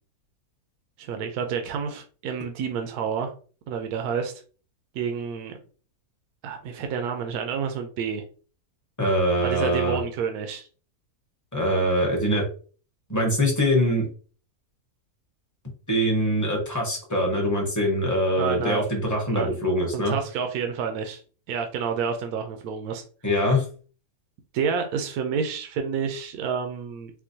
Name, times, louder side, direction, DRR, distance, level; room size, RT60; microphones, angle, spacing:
voice 1, 1.0-3.3 3.7-4.3 4.9-5.6 6.4-8.2 9.4-10.7 18.4-18.9 19.3-19.6 19.9-21.2 21.5-23.0 24.5-27.1, right 6 dB, 75° right, 5 dB, 1.0 m, -29 dB
voice 2, 9.0-10.0 11.5-12.4 13.1-14.1 15.9-20.1 23.2-23.6, equal, 15° left, -1 dB, 0.8 m, -23 dB
4.4 x 2.2 x 2.7 m, 0.39 s
omnidirectional pair, 1.6 m